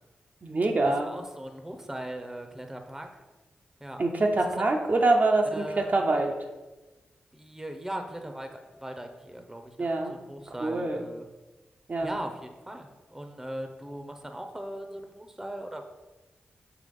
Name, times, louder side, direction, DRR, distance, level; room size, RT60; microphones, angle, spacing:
voice 1, 0.4-1.1 4.0-6.5 9.8-10.2 10.6-11.1 11.9-12.2, right 2 dB, 45° right, 2 dB, 0.6 m, -25 dB
voice 2, 1.0-3.1 3.8-4.0 5.5-6.0 7.3-11.3 12.0-15.9, right 1 dB, 10° right, 5 dB, 0.8 m, -39 dB
6.8 x 2.9 x 5.4 m, 1.1 s
cardioid pair, 60°, 4 cm